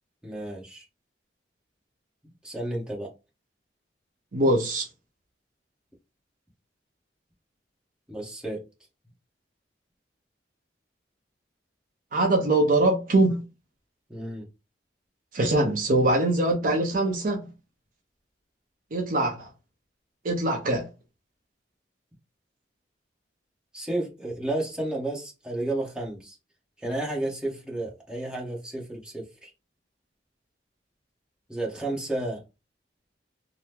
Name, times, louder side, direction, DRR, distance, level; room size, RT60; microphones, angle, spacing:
voice 1, 0.2-0.8 2.4-3.1 8.1-8.6 14.1-14.5 23.7-26.4 26.8-29.5 31.5-32.4, right 1 dB, 5° right, 1.0 m, -32 dB
voice 2, 4.3-4.9 12.1-13.4 15.3-17.4 18.9-19.5 20.2-20.9, right 2 dB, 50° right, 0.6 m, -23 dB
2.9 x 2.0 x 3.4 m
head